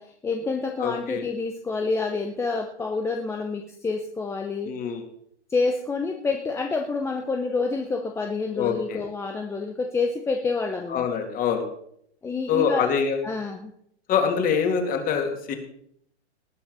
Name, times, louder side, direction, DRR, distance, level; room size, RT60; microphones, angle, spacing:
voice 1, 0.0-4.7 5.5-11.1 12.2-12.9 13.2-13.7, left 4 dB, 10° left, 4 dB, 0.7 m, -28 dB
voice 2, 0.8-1.2 4.6-5.0 8.6-9.0 10.9-11.6 12.5-13.2 14.1-15.6, left 7 dB, 25° left, 5 dB, 2.5 m, -24 dB
19.5 x 7.1 x 5.4 m, 0.69 s
hypercardioid pair, 135°, 34 cm